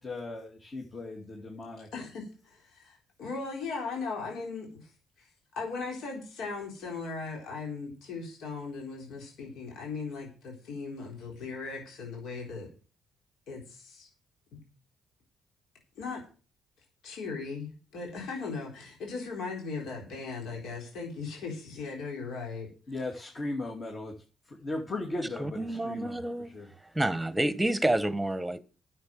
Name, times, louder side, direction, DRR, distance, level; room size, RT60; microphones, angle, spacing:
voice 1, 0.0-1.9 22.9-24.1 24.6-26.2 26.5-26.7, left 2 dB, 35° left, 2.7 m, -37 dB
voice 2, 1.9-4.9 5.2-5.3 5.6-12.7 13.5-14.1 14.5-14.6 16.0-16.2 17.0-22.7, left 4 dB, 80° left, 4.0 m, -38 dB
voice 3, 25.4-26.5 26.9-28.6, right 1 dB, 10° right, 1.3 m, -28 dB
10.0 x 7.9 x 7.6 m
cardioid pair, 90°, 0 cm